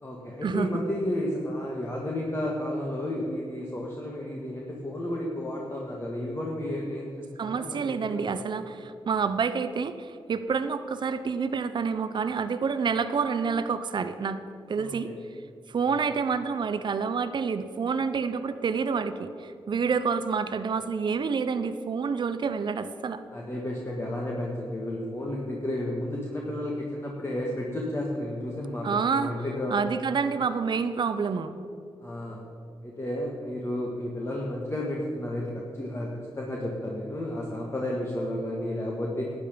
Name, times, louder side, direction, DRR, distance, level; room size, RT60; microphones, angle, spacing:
voice 1, 0.0-8.3 14.8-15.1 15.8-16.1 23.3-29.7 32.0-32.4 32.8-39.3, left 1 dB, 25° left, -2 dB, 1.6 m, -32 dB
voice 2, 7.4-14.4 14.7-15.1 15.7-23.2 28.8-29.3 29.7-31.5, right 5 dB, 55° right, 11 dB, 0.6 m, -28 dB
12.0 x 9.0 x 5.1 m, 2.5 s
cardioid pair, 70°, 9 cm